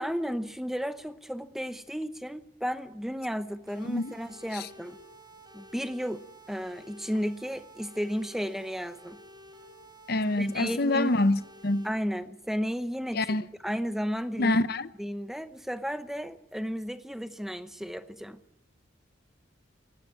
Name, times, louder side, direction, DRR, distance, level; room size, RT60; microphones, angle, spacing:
voice 1, 0.0-5.0 5.5-6.2 6.5-9.2 10.4-11.1 11.8-13.4 13.6-14.6 15.0-18.4, equal, ahead, 0.8 m, -33 dB
sound 1, 3.7-11.9, equal, 20° right, 4.0 m, -51 dB
voice 2, 10.1-11.9 13.1-13.4 14.4-14.9, left 2 dB, 50° left, 0.8 m, -26 dB
19.5 x 17.0 x 9.5 m
head